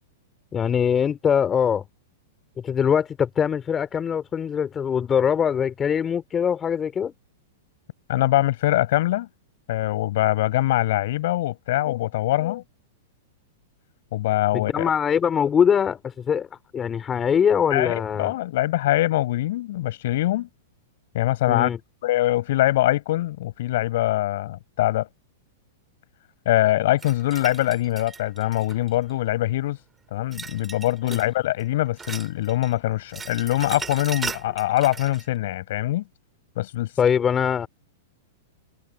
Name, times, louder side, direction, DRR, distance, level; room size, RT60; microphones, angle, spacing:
voice 1, 0.5-1.8 2.6-7.1 14.5-16.5 16.7-18.3 21.5-21.8 37.0-37.7, left 7 dB, 20° left, 3.6 m, -22 dB
voice 2, 8.1-9.3 9.7-12.6 14.1-14.9 17.7-20.5 21.1-21.7 22.0-25.1 26.5-29.8 30.1-36.0 36.6-36.9, left 15 dB, 65° left, 5.5 m, -23 dB
sound 1, 27.0-29.1 30.3-31.3 31.6-32.7 33.0-35.3, right 5 dB, 15° right, 7.3 m, -37 dB
hypercardioid pair, 135°, 0 cm